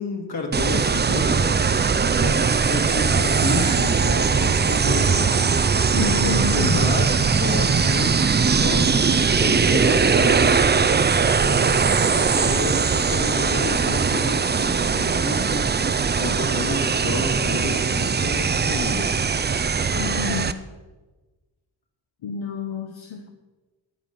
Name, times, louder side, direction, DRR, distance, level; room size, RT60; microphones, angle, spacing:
voice 1, 0.0-1.8 2.1-5.3 6.0-10.6 11.4-19.1, left 2 dB, 55° left, 1 dB, 2.6 m, -30 dB
sound 1, 0.5-20.5, right 5 dB, 25° right, 0.4 m, -20 dB
voice 2, 5.9-6.9 19.9-20.6 22.2-23.3, left 6 dB, 75° left, 4 dB, 1.0 m, -29 dB
17.5 x 6.6 x 5.4 m, 1.2 s
wide cardioid pair, 120°, 46 cm